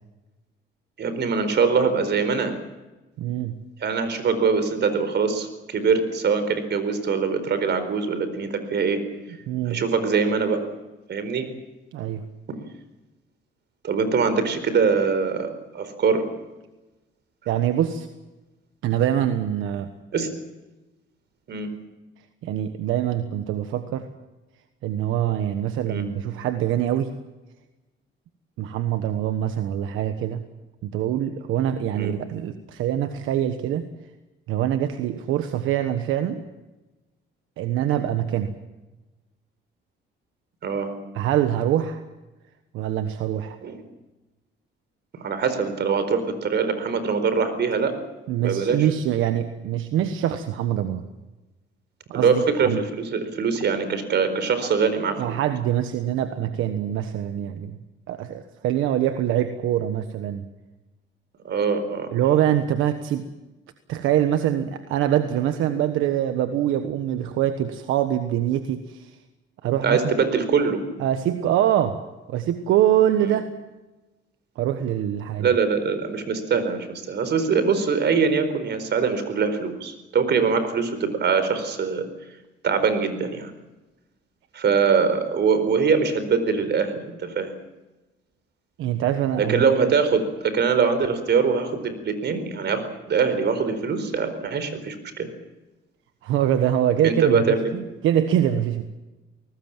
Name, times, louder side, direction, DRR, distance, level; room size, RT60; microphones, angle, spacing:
voice 1, 1.0-2.6 3.8-9.0 9.7-10.7 11.1-11.5 13.8-16.3 20.1-20.3 21.5-21.8 25.9-26.1 31.9-32.1 40.6-40.9 43.6-43.8 45.1-48.0 48.4-48.9 52.1-55.4 61.4-62.1 69.6-70.8 73.2-73.3 75.4-82.1 82.6-83.5 84.5-87.5 89.4-95.3 97.0-97.7, right 5 dB, 60° right, 10 dB, 4.5 m, -23 dB
voice 2, 3.2-3.6 9.5-9.8 11.9-12.2 17.5-18.1 18.8-19.9 22.4-24.1 24.8-27.2 28.6-30.4 30.8-33.8 34.5-36.4 37.6-38.5 41.1-42.0 42.7-43.6 48.3-51.0 52.1-52.8 55.2-57.8 58.1-60.5 62.1-63.3 63.9-69.1 69.6-70.0 71.0-72.0 72.3-73.5 74.6-75.5 88.8-89.6 96.2-98.8, right 11 dB, 90° right, 8 dB, 1.3 m, -24 dB
23.0 x 19.0 x 7.5 m, 1.1 s
cardioid pair, 90°, 20 cm